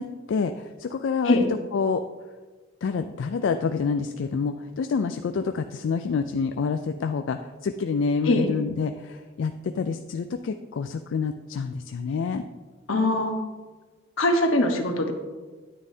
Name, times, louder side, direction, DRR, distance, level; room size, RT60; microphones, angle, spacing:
voice 1, 0.0-1.4 1.7-2.0 2.8-12.4, left 5 dB, 70° left, 7 dB, 0.3 m, -27 dB
voice 2, 12.9-13.3 14.2-15.1, left 1 dB, 90° left, 4 dB, 1.1 m, -22 dB
9.6 x 9.4 x 2.8 m, 1.4 s
head